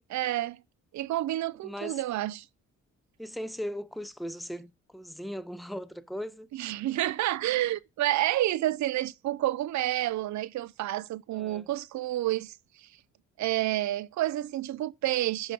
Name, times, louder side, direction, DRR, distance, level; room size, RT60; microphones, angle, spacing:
voice 1, 0.1-0.6 0.9-2.5 6.5-12.9 13.4-15.5, right 14 dB, 70° right, 0.4 m, -29 dB
voice 2, 1.6-2.0 3.2-6.5 11.3-11.7, equal, ahead, 0.3 m, -38 dB
6.7 x 5.1 x 3.7 m
cardioid pair, 115°, 30 cm